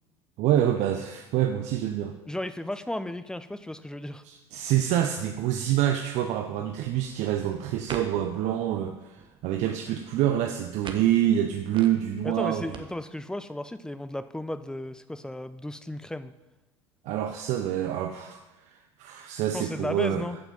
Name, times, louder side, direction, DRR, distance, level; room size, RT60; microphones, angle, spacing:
voice 1, 0.4-2.2 4.2-12.6 17.0-20.2, right 11 dB, 55° right, 5 dB, 0.8 m, -27 dB
voice 2, 2.3-4.2 12.2-16.3 19.5-20.4, left 1 dB, 5° left, 12 dB, 0.7 m, -34 dB
sound 1, 6.7-12.8, right 5 dB, 35° right, 1.4 m, -46 dB
14.5 x 5.9 x 5.5 m, 1.0 s
hypercardioid pair, 70°, 15 cm